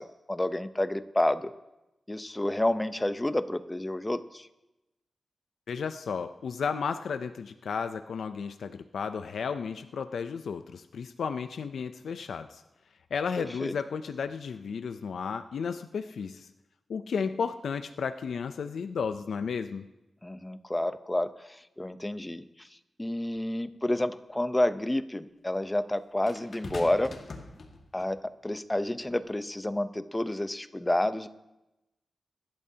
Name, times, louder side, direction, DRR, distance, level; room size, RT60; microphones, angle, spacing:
voice 1, 0.0-1.5 2.1-4.5 13.4-13.7 20.2-22.7 23.0-27.1 27.9-31.3, left 1 dB, 15° left, 11 dB, 0.7 m, -30 dB
voice 2, 5.7-12.6 13.1-16.5 16.9-19.9, left 6 dB, 90° left, 9 dB, 0.5 m, -33 dB
sound 1, 23.4-23.5 26.3-28.2 29.1-29.3, left 3 dB, 65° left, 1.8 m, -43 dB
23.0 x 12.0 x 2.8 m, 0.97 s
cardioid pair, 75°, 0 cm